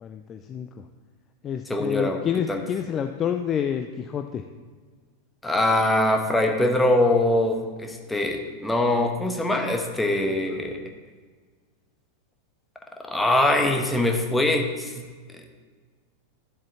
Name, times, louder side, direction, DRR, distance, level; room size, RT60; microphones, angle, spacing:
voice 1, 0.0-0.7 1.4-4.4, left 8 dB, 25° left, 6 dB, 0.4 m, -28 dB
voice 2, 1.7-2.2 2.5-2.6 5.4-10.8 13.0-14.9, left 1 dB, 5° left, 3 dB, 1.0 m, -23 dB
12.5 x 7.4 x 2.9 m, 1.5 s
figure-of-eight pair, 90°, 0 cm